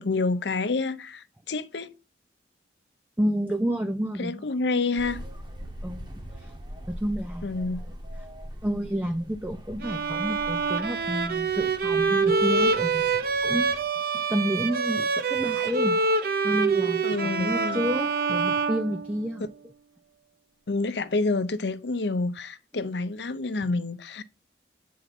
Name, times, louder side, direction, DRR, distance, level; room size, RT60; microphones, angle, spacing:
voice 1, 0.0-1.9 4.2-5.2 7.4-7.8 17.0-17.8 20.7-24.2, left 3 dB, 75° left, 0.7 m, -28 dB
voice 2, 3.2-4.5 5.8-6.6 6.9-7.8 8.6-13.7 14.1-16.0 16.4-17.0 17.4-19.4, equal, 10° right, 0.4 m, -30 dB
sound 1, 5.0-13.8, equal, 25° right, 1.0 m, -42 dB
Bowed string instrument, 9.8-19.5, right 4 dB, 55° right, 0.7 m, -26 dB
7.9 x 4.7 x 4.1 m
head